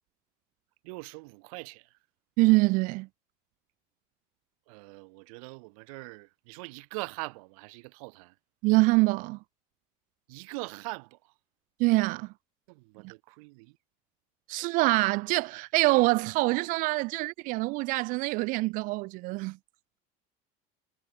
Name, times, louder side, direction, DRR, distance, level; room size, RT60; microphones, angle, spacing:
voice 1, 0.8-2.0 4.7-8.3 10.3-11.3 12.7-13.8, right 28 dB, 75° right, 1.2 m, -42 dB
voice 2, 2.4-3.1 8.6-9.4 11.8-12.3 13.0-13.1 14.5-19.6, right 24 dB, 50° right, 0.6 m, -25 dB
cardioid pair, 170°, 18 cm